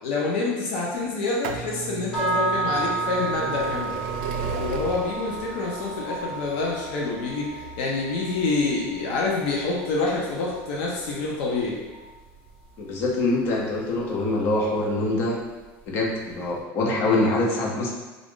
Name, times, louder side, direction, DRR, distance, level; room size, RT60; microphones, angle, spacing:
voice 1, 0.0-4.0 4.5-11.8 17.0-17.3, left 3 dB, 80° left, -3 dB, 0.8 m, -27 dB
sound 1, 1.1-12.8 13.6-13.7 14.6-14.7 14.9-15.0, right 6 dB, 65° right, 0.4 m, -36 dB
sound 2, 2.1-12.2, right 3 dB, 10° left, 1.0 m, -33 dB
voice 2, 12.8-15.4 15.9-17.9, left 2 dB, 40° left, -1 dB, 0.7 m, -24 dB
3.7 x 2.4 x 3.6 m, 1.2 s
cardioid pair, 175°, 6 cm